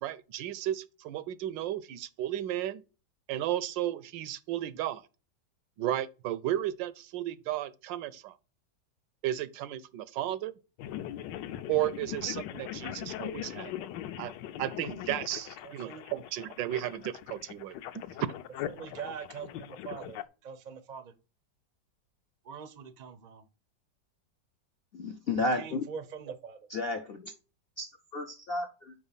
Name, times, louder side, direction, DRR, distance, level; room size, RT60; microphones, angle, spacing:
voice 1, 0.0-2.8 3.3-5.0 5.8-8.3 9.2-10.5 11.7-13.7 14.2-14.3 14.6-18.3, right 12 dB, 85° right, 1.3 m, -34 dB
sound 1, 10.8-20.2, left 12 dB, 80° left, 1.2 m, -40 dB
voice 2, 15.6-16.0 18.7-21.1 22.4-23.4 25.4-26.6, right 7 dB, 65° right, 0.4 m, -43 dB
voice 3, 24.9-25.8 26.7-27.3 27.8-27.9 28.1-28.9, left 2 dB, 65° left, 0.6 m, -32 dB
5.3 x 4.8 x 5.5 m
omnidirectional pair, 2.0 m